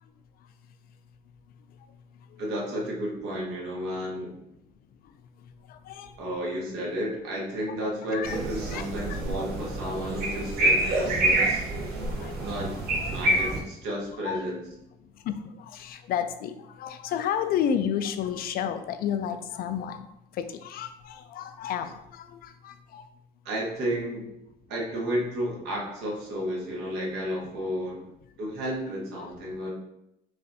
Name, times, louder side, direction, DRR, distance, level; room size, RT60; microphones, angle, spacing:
voice 1, 2.4-4.4 6.2-11.7 12.4-12.8 13.1-14.6 23.4-24.2 24.7-28.0 28.4-29.7, equal, 85° right, -3 dB, 1.4 m, -32 dB
voice 2, 5.7-6.1 8.1-8.4 8.7-8.8 9.1-9.2 11.0-11.1 12.2-12.7 13.0-13.6 14.2-14.5 15.2-20.1 20.3-23.0, left 8 dB, 60° left, 10 dB, 0.4 m, -32 dB
sound 1, 8.2-13.6, right 1 dB, 65° right, 1.2 m, -27 dB
5.5 x 2.5 x 2.7 m, 0.82 s
cardioid pair, 110°, 17 cm